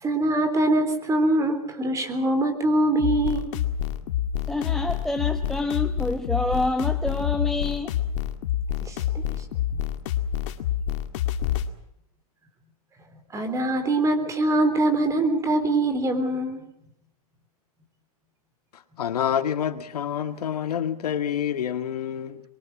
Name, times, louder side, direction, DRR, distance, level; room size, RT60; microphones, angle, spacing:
voice 1, 0.0-3.5 8.8-9.0 13.3-16.6, right 1 dB, 15° right, 3.6 m, -23 dB
sound 1, 3.0-11.7, left 10 dB, 55° left, 2.0 m, -27 dB
voice 2, 4.5-7.9, left 2 dB, ahead, 1.1 m, -27 dB
voice 3, 19.0-22.4, left 9 dB, 85° left, 1.9 m, -27 dB
24.0 x 23.0 x 6.1 m
hypercardioid pair, 135°, 19 cm